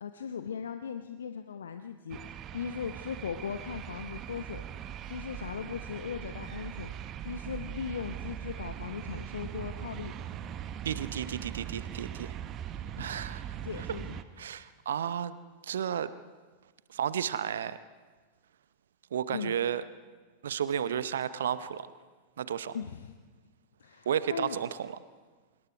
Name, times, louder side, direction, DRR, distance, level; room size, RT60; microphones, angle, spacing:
voice 1, 0.0-4.6 5.1-6.9 7.2-10.1 13.0-13.1 13.6-14.2 19.3-19.5 22.7-23.1 23.8-24.6, left 7 dB, 65° left, 8 dB, 0.8 m, -38 dB
sound 1, 2.1-14.2, right 10 dB, 30° right, 1.0 m, -40 dB
voice 2, 10.8-12.3 13.0-13.4 14.4-15.3 15.6-16.1 16.9-17.8 19.1-19.8 20.4-21.9 22.4-22.8 24.1-25.0, right 9 dB, 65° right, 15 dB, 0.7 m, -32 dB
25.5 x 22.0 x 4.8 m, 1.4 s
figure-of-eight pair, 90°, 0 cm